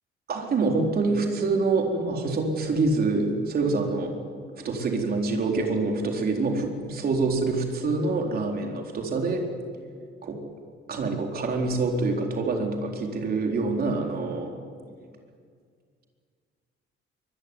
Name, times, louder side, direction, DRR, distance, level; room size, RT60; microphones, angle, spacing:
voice 1, 0.3-4.1 4.6-9.4 10.2-10.4 10.9-14.5, right 3 dB, 45° right, 2 dB, 4.2 m, -26 dB
24.0 x 23.0 x 9.9 m, 2.1 s
cardioid pair, 165°, 21 cm